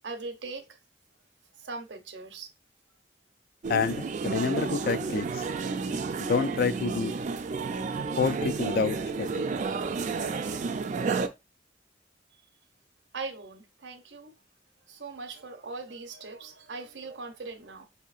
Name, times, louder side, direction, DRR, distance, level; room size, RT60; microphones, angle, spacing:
voice 1, 0.0-0.7 1.6-2.5 13.1-14.4 14.9-17.8, right 3 dB, 75° right, 0.7 m, -40 dB
sound 1, 3.6-11.3, right 4 dB, 45° right, 0.4 m, -31 dB
voice 2, 3.7-5.4 6.2-7.1 8.2-9.5, left 5 dB, 55° left, 0.3 m, -28 dB
5.4 x 2.8 x 2.4 m
head